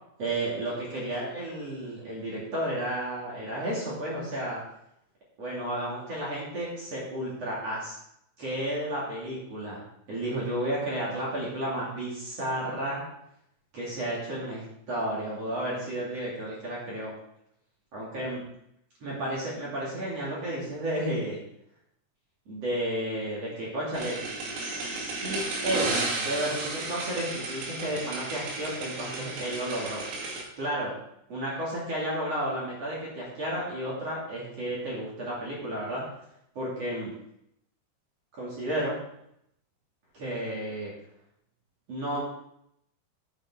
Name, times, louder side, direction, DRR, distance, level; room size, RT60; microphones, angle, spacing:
voice 1, 0.2-4.6 5.4-7.9 8.4-9.8 10.1-13.0 13.7-17.1 17.9-18.4 19.0-21.4 22.5-24.2 24.6-30.0 30.6-30.9 31.3-36.0 36.5-37.1 38.4-38.9 40.1-40.9 41.9-42.2, right 1 dB, 40° right, -6 dB, 2.9 m, -32 dB
sound 1, 23.9-30.4, right 3 dB, 70° right, 4.6 m, -33 dB
9.4 x 8.9 x 3.8 m, 0.76 s
omnidirectional pair, 5.8 m